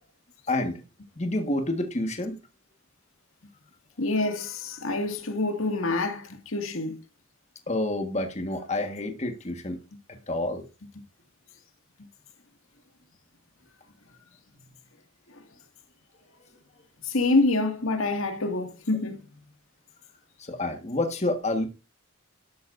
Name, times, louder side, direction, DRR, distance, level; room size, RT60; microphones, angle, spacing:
voice 1, 0.5-0.8 1.2-2.4 7.7-9.8 10.3-10.6 20.4-21.7, left 2 dB, 35° left, 1.5 m, -28 dB
voice 2, 4.0-7.0 17.1-19.2, left 2 dB, 80° left, 2.1 m, -26 dB
12.5 x 11.5 x 2.6 m
head